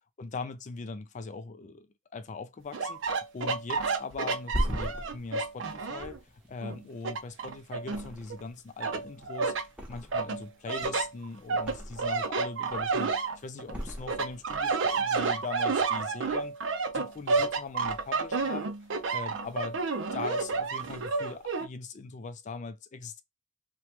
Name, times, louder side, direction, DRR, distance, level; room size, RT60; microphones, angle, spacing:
voice 1, 0.2-6.2 6.5-9.5 9.9-16.5 16.9-18.7 19.1-19.8 20.1-23.2, left 4 dB, 40° left, 0.4 m, -40 dB
sound 1, 2.7-6.2 6.6-8.4 8.8-9.7 10.1-13.7 14.1-21.7, right 4 dB, 75° right, 0.5 m, -30 dB
Thump thud, 4.1-7.4 7.8-8.6 8.9-10.4 10.7-12.2 12.6-13.1 13.7-14.7 15.0-15.2, equal, 5° right, 0.8 m, -38 dB
3.1 x 2.2 x 2.9 m
head